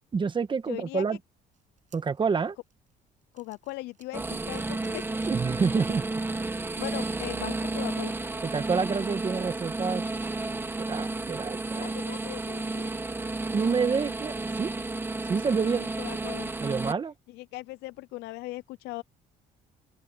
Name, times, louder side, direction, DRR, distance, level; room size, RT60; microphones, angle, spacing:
voice 1, 0.1-1.2 1.9-2.6 5.3-6.0 8.4-10.0 10.8-11.9 13.5-14.7 15.2-15.9 16.6-17.1, right 5 dB, 30° right, 1.6 m, -28 dB
voice 2, 0.7-1.0 3.3-5.0 6.8-8.2 11.8-12.9 15.5-15.6 16.0-16.5 17.3-19.0, left 20 dB, 85° left, 0.4 m, -39 dB
sound 1, 1.5-5.9 6.4-6.5 7.5-7.6, right 8 dB, 45° right, 7.3 m, -63 dB
sound 2, 4.1-16.9, right 2 dB, 15° right, 1.2 m, -32 dB
open air
cardioid pair, 110°, 17 cm